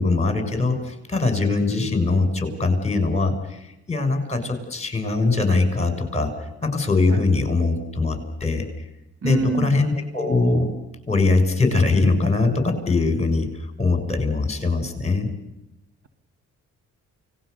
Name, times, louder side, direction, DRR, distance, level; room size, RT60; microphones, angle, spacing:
voice 1, 0.0-6.3 6.6-8.6 9.2-10.7 11.1-13.5 13.8-15.3, left 3 dB, 20° left, 7 dB, 6.7 m, -22 dB
voice 2, 9.2-9.8, right 4 dB, 50° right, 8 dB, 2.3 m, -26 dB
29.5 x 19.5 x 6.8 m, 0.91 s
cardioid pair, 90°, 30 cm